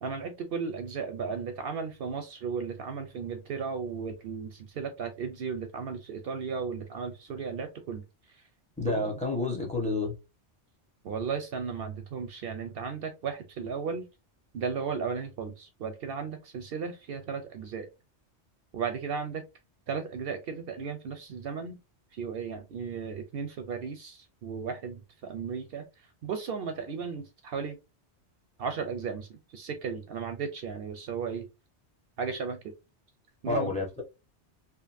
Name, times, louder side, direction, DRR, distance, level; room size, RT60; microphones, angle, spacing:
voice 1, 0.0-8.0 8.9-9.1 11.0-14.1 14.5-17.9 18.7-19.4 19.9-21.8 22.1-25.8 26.2-27.8 28.6-31.5 32.2-32.7 33.4-33.7, right 5 dB, 65° right, 0.7 m, -35 dB
voice 2, 8.8-10.1 33.5-34.0, left 2 dB, 10° left, 0.6 m, -29 dB
2.8 x 2.5 x 2.5 m
omnidirectional pair, 1.2 m